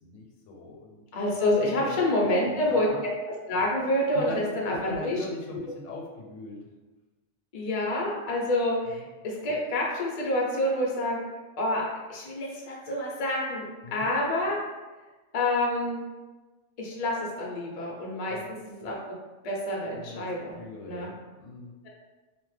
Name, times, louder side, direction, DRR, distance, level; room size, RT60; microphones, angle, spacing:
voice 1, 0.0-1.0 1.6-2.0 2.5-3.0 4.1-6.6 8.8-9.1 13.8-14.1 18.3-18.5 19.9-20.2 20.5-21.7, left 2 dB, 80° left, -1 dB, 1.0 m, -40 dB
voice 2, 1.1-2.9 3.5-5.2 5.5-5.6 7.5-11.2 11.6-11.8 12.1-13.6 13.9-14.6 15.3-16.0 16.8-19.2 19.4-20.6 20.9-21.1, left 1 dB, 45° left, -3 dB, 0.5 m, -28 dB
2.9 x 2.1 x 3.1 m, 1.2 s
omnidirectional pair, 1.3 m